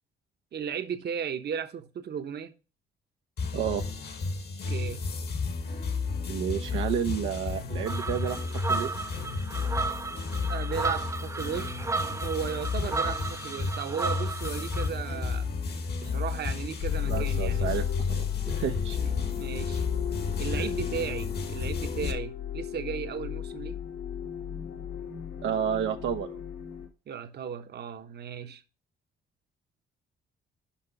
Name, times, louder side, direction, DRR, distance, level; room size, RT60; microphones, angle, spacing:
voice 1, 0.5-2.5 4.7-5.0 10.5-11.7 12.2-15.5 16.0-17.8 19.0-19.8 20.4-23.8 27.1-28.6, right 7 dB, 55° right, 1.0 m, -35 dB
sound 1, 3.4-22.1, left 4 dB, 55° left, 1.4 m, -33 dB
voice 2, 3.5-3.8 6.3-8.9 17.1-19.0 20.5-20.7 25.4-26.4, right 9 dB, 85° right, 0.8 m, -31 dB
sound 2, 7.9-14.9, right 4 dB, 15° right, 0.4 m, -34 dB
sound 3, 16.8-26.9, left 11 dB, 85° left, 2.6 m, -34 dB
5.8 x 5.5 x 6.9 m
cardioid pair, 90°, 20 cm